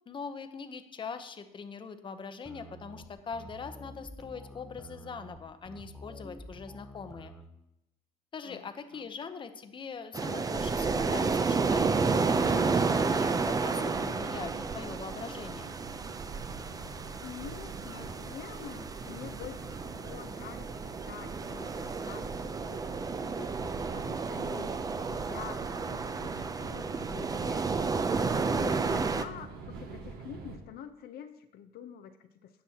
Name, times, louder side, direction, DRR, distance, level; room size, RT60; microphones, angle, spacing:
voice 1, 0.1-7.3 8.3-11.8 12.2-15.7, left 5 dB, 30° left, 9 dB, 0.7 m, -42 dB
sound 1, 2.4-7.5, equal, ahead, 0.8 m, -48 dB
sound 2, 10.1-29.2, right 4 dB, 20° right, 0.5 m, -31 dB
sound 3, 11.6-30.6, right 4 dB, 70° right, 1.6 m, -45 dB
voice 2, 17.2-27.7 28.5-32.6, left 9 dB, 70° left, 8 dB, 0.6 m, -47 dB
16.5 x 6.1 x 2.9 m, 0.85 s
cardioid pair, 110°, 17 cm